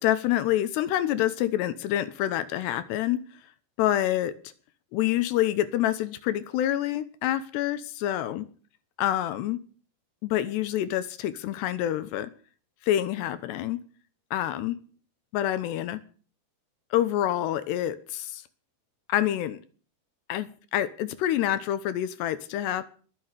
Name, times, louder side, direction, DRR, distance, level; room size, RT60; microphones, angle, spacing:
voice 1, 0.0-3.2 3.8-4.3 4.9-8.5 9.0-9.6 10.2-12.3 12.8-13.8 14.3-14.8 15.3-16.0 16.9-18.4 19.1-19.6 20.3-22.8, left 12 dB, 75° left, 13 dB, 2.9 m, -27 dB
21.0 x 7.8 x 6.6 m, 0.41 s
omnidirectional pair, 5.3 m